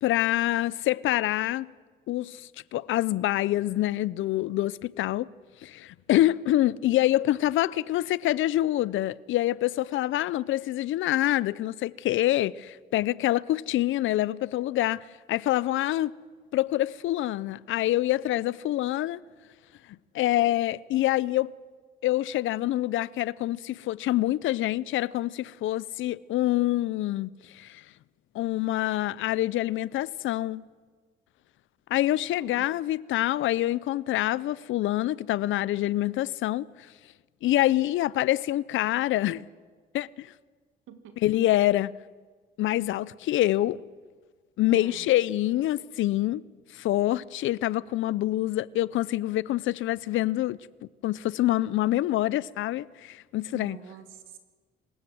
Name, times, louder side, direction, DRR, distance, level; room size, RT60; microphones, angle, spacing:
voice 1, 0.0-1.7 2.1-5.3 5.6-16.1 16.5-19.2 20.1-21.5 22.0-27.8 28.3-30.6 31.9-36.7 37.4-39.5 39.9-40.3 41.2-41.9 42.6-43.8 44.6-46.4 46.7-50.6 51.0-53.8, left 15 dB, 80° left, 0.6 m, -26 dB
voice 2, 32.3-32.7 40.9-41.2 44.7-45.1 53.5-54.4, right 9 dB, 85° right, 2.2 m, -46 dB
27.0 x 16.0 x 7.8 m
cardioid pair, 90°, 20 cm